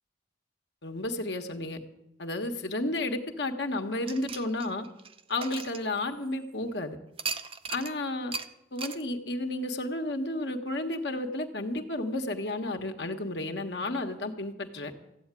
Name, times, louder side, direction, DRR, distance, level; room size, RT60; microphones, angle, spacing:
voice 1, 0.8-1.8 2.2-4.8 5.3-7.0 7.7-8.3 8.7-14.9, left 2 dB, 70° left, 5 dB, 1.4 m, -32 dB
sound 1, 4.1-6.5 7.2-7.9 8.3-8.5 8.8-9.0, right 5 dB, 30° right, 0.7 m, -37 dB
15.0 x 8.0 x 9.7 m, 0.88 s
head